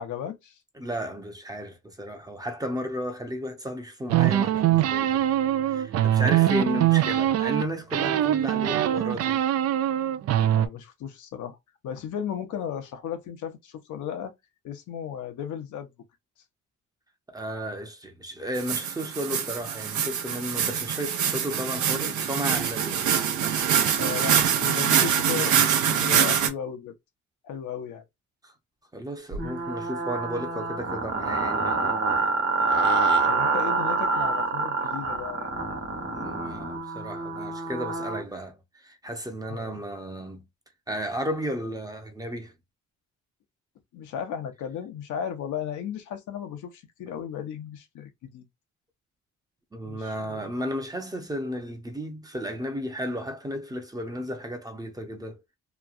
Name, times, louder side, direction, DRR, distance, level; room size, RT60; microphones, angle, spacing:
voice 1, 0.0-0.6 6.2-6.5 10.5-11.6 11.8-14.3 14.6-15.9 24.0-26.9 27.4-28.0 33.3-35.6 39.5-39.8 43.9-48.4 49.8-50.5, left 8 dB, 75° left, 0.8 m, -35 dB
voice 2, 0.8-5.2 5.7-9.5 17.3-23.0 28.4-28.5 28.9-32.2 36.1-40.4 40.9-42.5 49.7-55.4, equal, 10° right, 0.7 m, -34 dB
sound 1, 4.1-7.6 7.9-10.7, right 12 dB, 55° right, 0.4 m, -23 dB
sound 2, 18.6-26.5, right 8 dB, 75° right, 0.8 m, -24 dB
sound 3, 29.3-38.2, right 3 dB, 40° right, 1.2 m, -27 dB
3.0 x 2.3 x 2.4 m
cardioid pair, 90°, 30 cm